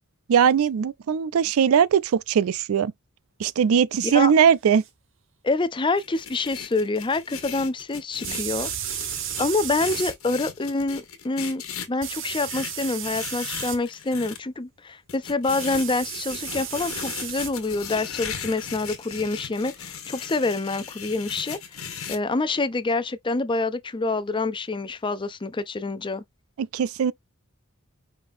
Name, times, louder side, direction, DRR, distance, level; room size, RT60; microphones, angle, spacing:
voice 1, 0.3-2.9 3.4-4.8 26.6-27.1, right 7 dB, 80° right, 0.4 m, -20 dB
sound 1, 4.8-4.9 8.2-10.1 12.0-13.8 15.5-17.5, right 11 dB, 60° right, 0.8 m, -33 dB
voice 2, 5.4-8.7 9.4-11.6 11.9-26.2, left 3 dB, 25° left, 0.5 m, -27 dB
sound 2, 6.0-14.4 15.1-22.2, left 7 dB, 85° left, 1.5 m, -37 dB
5.2 x 3.7 x 2.6 m
head